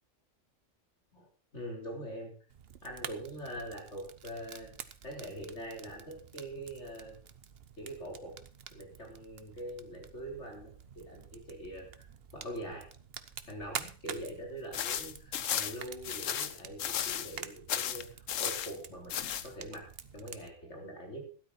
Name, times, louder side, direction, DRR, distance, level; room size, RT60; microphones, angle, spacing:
voice 1, 1.5-2.3 2.8-4.7 5.0-7.2 7.8-8.4 8.7-12.1 12.3-12.9 13.5-19.9 20.1-21.3, right 1 dB, 60° left, 0 dB, 4.3 m, -43 dB
Fire, 2.5-20.5, right 7 dB, 55° right, 1.0 m, -48 dB
sound 1, 14.7-17.4 17.7-18.7 19.1-19.5, left 10 dB, 80° left, 1.2 m, -34 dB
12.5 x 12.5 x 4.3 m, 0.37 s
omnidirectional pair, 1.3 m